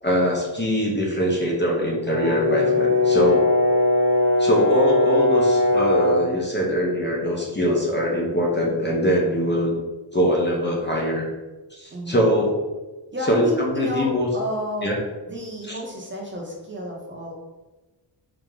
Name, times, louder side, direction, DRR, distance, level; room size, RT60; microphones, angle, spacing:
voice 1, 0.0-3.5 4.4-9.7 10.1-11.2 11.7-12.6 13.3-14.3 14.8-15.0 15.7-15.8, equal, 25° left, -3 dB, 0.7 m, -22 dB
Brass instrument, 2.1-6.3, left 2 dB, 85° left, 1.1 m, -20 dB
voice 2, 11.9-12.3 13.1-15.0 15.3-17.3, left 1 dB, 25° right, -2 dB, 0.9 m, -31 dB
4.8 x 2.9 x 3.7 m, 1.2 s
wide cardioid pair, 160°, 45 cm